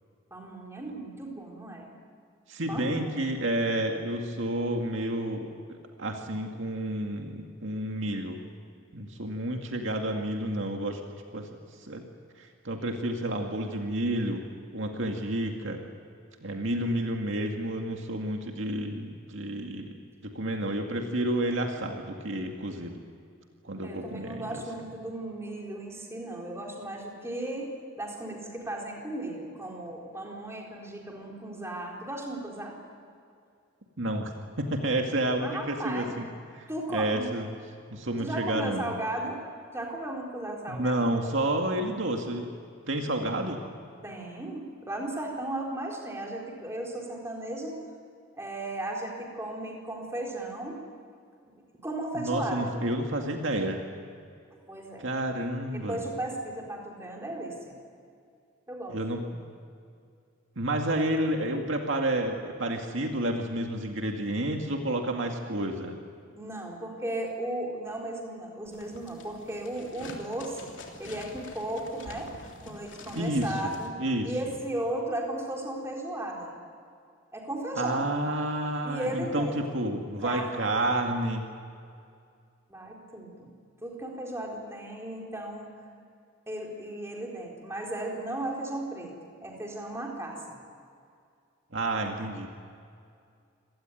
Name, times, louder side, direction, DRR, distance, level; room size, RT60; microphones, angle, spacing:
voice 1, 0.3-1.9 2.7-3.2 23.8-32.7 35.4-36.1 36.7-37.3 38.2-39.4 39.7-41.1 44.0-47.8 48.4-50.8 51.8-52.8 54.7-55.1 55.7-57.7 58.7-59.0 66.3-70.7 71.0-72.3 72.7-74.0 74.2-76.5 77.3-78.1 78.8-79.5 80.2-81.0 82.7-83.5 83.8-85.7 86.5-89.1 89.4-90.6 92.0-92.1, right 1 dB, 15° right, -1 dB, 4.1 m, -35 dB
voice 2, 2.5-5.5 6.0-8.4 8.9-11.0 11.3-11.5 11.8-12.0 12.4-14.4 14.7-15.8 16.4-19.9 20.2-23.0 23.6-24.6 34.0-34.3 34.6-36.3 36.5-37.5 37.9-38.9 40.7-42.5 42.9-43.6 52.1-53.8 55.0-56.0 58.9-59.4 60.6-66.0 73.2-74.3 77.8-81.4 91.7-92.5, right 1 dB, 65° right, 2 dB, 2.2 m, -30 dB
sound 1, 68.7-73.9, left 2 dB, 60° left, 3.3 m, -45 dB
26.5 x 18.0 x 9.2 m, 2.3 s
head